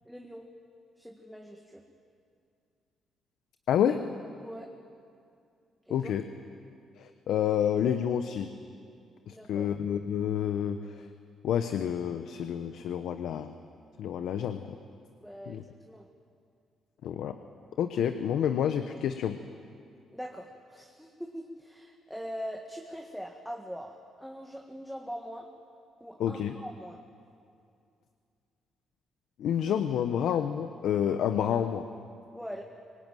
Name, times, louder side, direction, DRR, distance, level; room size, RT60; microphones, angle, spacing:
voice 1, 0.1-0.5 1.0-1.9 4.4-4.7 5.9-6.1 9.3-9.7 15.2-16.1 20.1-25.5 26.0-27.0 32.3-32.6, equal, ahead, 2 dB, 1.7 m, -42 dB
voice 2, 3.7-4.0 5.9-6.2 7.0-8.5 9.3-10.8 11.4-13.5 14.0-14.6 15.5-15.6 17.0-17.3 17.8-19.4 26.2-26.6 29.4-31.8, left 9 dB, 75° left, 9 dB, 0.9 m, -29 dB
24.5 x 19.5 x 9.2 m, 2.4 s
cardioid pair, 90°, 0 cm